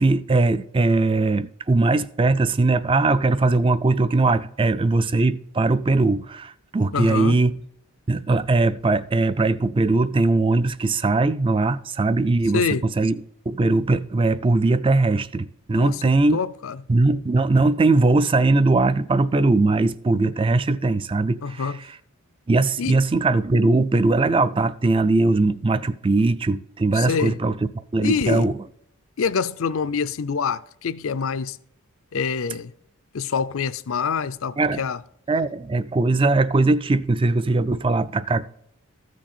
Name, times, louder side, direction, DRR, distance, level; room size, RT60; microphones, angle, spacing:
voice 1, 0.0-7.6 8.1-13.1 13.5-16.4 16.9-21.7 22.5-27.6 27.9-28.6 34.6-34.8 35.3-38.5, right 3 dB, 25° right, 0.3 m, -20 dB
voice 2, 6.9-7.4 12.5-12.8 15.7-16.0 16.3-16.8 21.4-21.8 22.8-23.0 26.9-27.4 28.0-28.5 29.2-31.6 32.1-32.7 33.1-35.0, left 5 dB, 65° left, 0.5 m, -25 dB
14.0 x 6.3 x 4.3 m
head